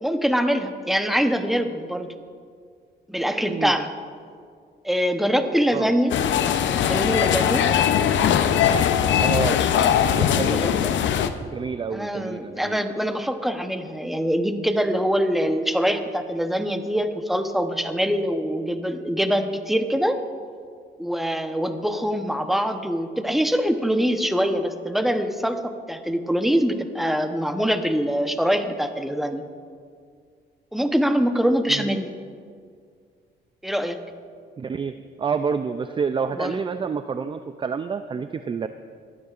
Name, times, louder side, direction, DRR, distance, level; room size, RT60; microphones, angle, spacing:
voice 1, 0.0-2.1 3.1-3.9 4.8-6.2 6.7-7.6 10.5-11.0 11.9-20.2 21.0-29.4 30.7-32.1 33.6-34.0 36.3-36.6, equal, ahead, 7 dB, 0.9 m, -24 dB
voice 2, 3.4-3.7 5.7-5.9 9.2-9.6 10.0-10.6 11.4-12.8 31.7-31.9 34.6-38.7, right 6 dB, 25° right, 10 dB, 0.4 m, -28 dB
sound 1, 6.1-11.3, left 9 dB, 70° left, 0.6 m, -20 dB
24.0 x 9.4 x 2.5 m, 2.1 s
cardioid pair, 90°, 20 cm